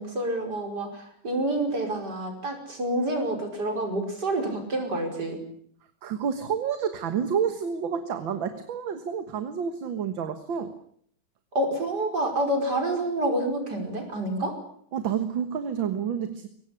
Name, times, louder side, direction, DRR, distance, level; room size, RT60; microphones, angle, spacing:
voice 1, 0.0-5.4 11.5-14.6, right 1 dB, 50° right, 5 dB, 6.0 m, -28 dB
voice 2, 6.0-10.7 14.9-16.5, right 7 dB, 70° right, 9 dB, 2.2 m, -29 dB
23.5 x 18.5 x 9.9 m, 0.65 s
omnidirectional pair, 2.2 m